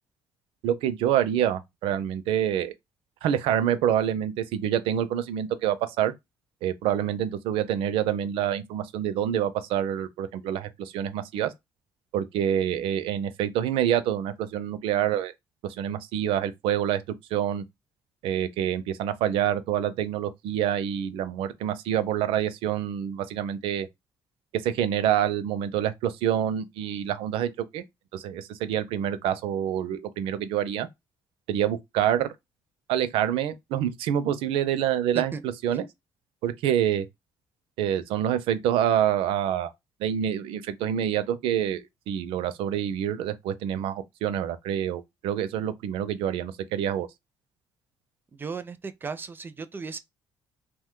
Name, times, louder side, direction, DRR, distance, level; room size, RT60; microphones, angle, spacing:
voice 1, 0.6-2.7 3.2-6.1 6.6-11.5 12.1-15.3 15.8-17.0 17.3-17.6 18.2-23.9 24.5-27.8 28.1-30.9 31.5-32.3 32.9-35.8 36.4-37.1 37.8-39.7 40.0-47.1, right 10 dB, 85° right, 0.4 m, -27 dB
voice 2, 48.4-50.0, right 5 dB, 25° right, 0.4 m, -36 dB
2.9 x 2.2 x 3.6 m
cardioid pair, 120°, 9 cm